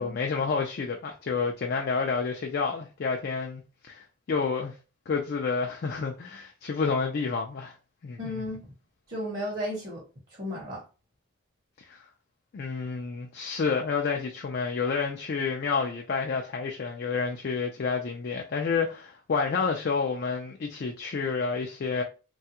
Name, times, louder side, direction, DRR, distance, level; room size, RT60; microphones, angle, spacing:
voice 1, 0.0-3.6 3.9-4.7 5.1-7.8 8.0-8.4 11.9-12.1 12.5-22.0, left 5 dB, 50° left, 0.3 m, -29 dB
voice 2, 8.2-8.7 9.1-10.0 10.4-10.8, left 1 dB, 40° right, 0.8 m, -34 dB
3.2 x 2.3 x 2.8 m
head